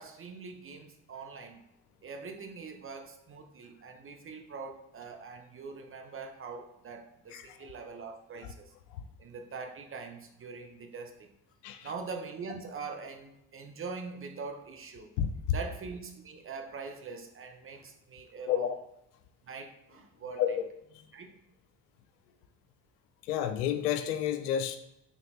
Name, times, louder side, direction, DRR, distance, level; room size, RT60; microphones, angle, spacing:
voice 1, 0.0-1.6 2.0-8.7 9.2-11.3 11.8-15.1 15.5-18.7 19.4-20.6 21.1-21.3, right 4 dB, 25° right, 4 dB, 0.7 m, -43 dB
voice 2, 20.4-20.7 23.3-24.8, left 10 dB, 75° left, 9 dB, 0.5 m, -30 dB
4.0 x 3.5 x 3.0 m, 0.84 s
figure-of-eight pair, 50°, 48 cm